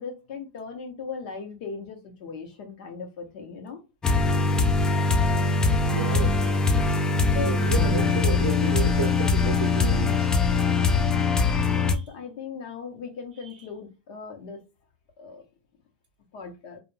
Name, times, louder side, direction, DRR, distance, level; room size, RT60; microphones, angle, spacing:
voice 1, 0.0-3.8 7.3-7.6 11.7-14.6 15.2-15.4 16.3-16.8, left 5 dB, 60° left, 0.9 m, -38 dB
sound 1, 4.0-11.9, left 4 dB, 15° left, 0.3 m, -22 dB
voice 2, 5.9-6.4 7.4-10.3 11.5-12.1, right 6 dB, 85° right, 0.5 m, -32 dB
2.4 x 2.2 x 3.1 m
supercardioid pair, 130°, 5 cm